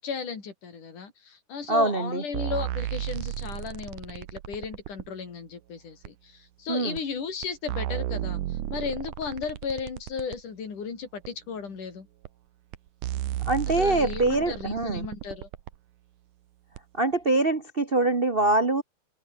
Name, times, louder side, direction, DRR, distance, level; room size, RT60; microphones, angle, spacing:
voice 1, 0.0-12.1 13.7-15.5, left 6 dB, 85° left, 5.6 m, -35 dB
voice 2, 1.7-2.2 6.7-7.0 13.4-15.0 17.0-18.8, right 2 dB, 65° right, 0.5 m, -24 dB
sound 1, 2.3-5.1 6.0-6.1 7.0-7.1 7.4-10.4 11.2-11.3 12.2-12.3 12.7-12.8 13.0-15.7 16.8-16.9, right 13 dB, 85° right, 2.6 m, -33 dB
omnidirectional pair, 3.5 m